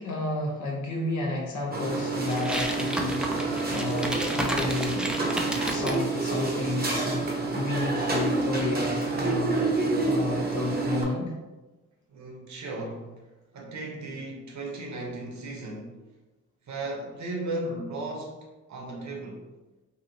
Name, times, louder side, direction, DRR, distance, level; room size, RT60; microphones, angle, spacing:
voice 1, 0.0-5.1 5.7-9.6 10.0-11.3, left 2 dB, 65° left, -1 dB, 0.9 m, -31 dB
sound 1, 1.7-11.0, right 3 dB, 30° right, 0.8 m, -28 dB
sound 2, 2.3-6.0, right 1 dB, 5° right, 0.4 m, -32 dB
voice 2, 12.1-13.2 13.5-16.0 16.6-19.4, right 2 dB, 60° right, -1 dB, 0.9 m, -36 dB
2.9 x 2.6 x 2.6 m, 1.1 s
supercardioid pair, 55°, 32 cm